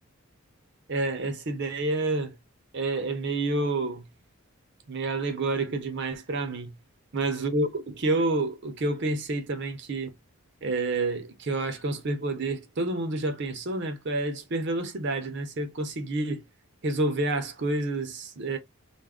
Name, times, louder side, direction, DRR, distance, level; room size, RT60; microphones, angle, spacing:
voice 1, 0.9-2.3 2.7-4.0 4.9-6.7 7.1-10.1 10.6-16.4 16.8-18.6, right 2 dB, 50° right, 0.6 m, -29 dB
2.4 x 2.0 x 3.4 m
head